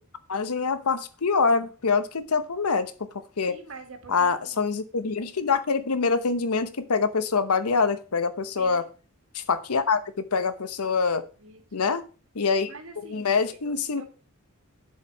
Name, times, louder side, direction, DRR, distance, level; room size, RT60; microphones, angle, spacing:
voice 1, 0.3-3.1 3.4-3.5 4.1-8.8 9.3-11.2 11.7-12.0 12.3-12.7 13.1-14.0, left 5 dB, 85° left, 12 dB, 0.8 m, -25 dB
voice 2, 3.5-4.7 8.6-8.8 11.4-11.9 12.7-13.4 13.6-14.1, right 3 dB, 65° right, 4 dB, 2.0 m, -45 dB
7.3 x 4.8 x 5.5 m, 0.35 s
head